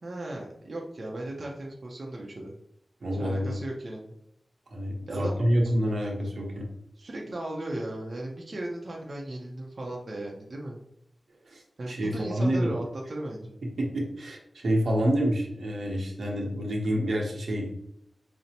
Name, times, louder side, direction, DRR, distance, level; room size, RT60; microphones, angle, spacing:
voice 1, 0.0-2.5 3.1-4.1 5.1-5.4 5.6-5.7 7.0-10.8 11.8-13.6, right 1 dB, 55° right, -2 dB, 0.6 m, -36 dB
voice 2, 3.0-3.5 4.7-6.7 11.5-11.6 11.9-12.7 13.8-17.7, equal, 85° right, -1 dB, 0.9 m, -27 dB
5.2 x 2.1 x 2.8 m, 0.77 s
wide cardioid pair, 90°, 0 cm